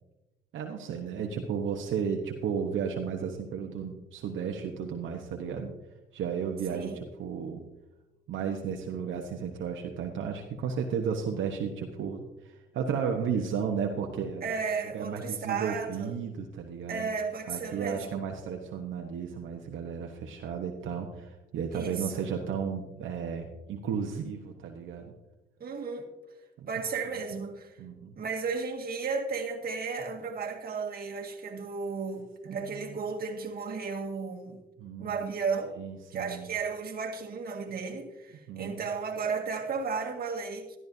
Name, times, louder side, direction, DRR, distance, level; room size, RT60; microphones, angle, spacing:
voice 1, 0.5-5.7 6.1-7.6 8.3-14.5 14.9-17.1 17.5-25.1 26.6-26.7 27.8-28.1 34.8-35.2 35.8-36.5 38.5-38.8, right 7 dB, 75° right, 1.1 m, -33 dB
voice 2, 14.4-16.1 16.9-18.2 21.7-22.3 25.6-26.1 26.7-27.8 28.2-34.6 35.0-35.8 36.1-40.8, right 5 dB, 50° right, 1.8 m, -34 dB
13.0 x 12.5 x 2.7 m
cardioid pair, 90°, 20 cm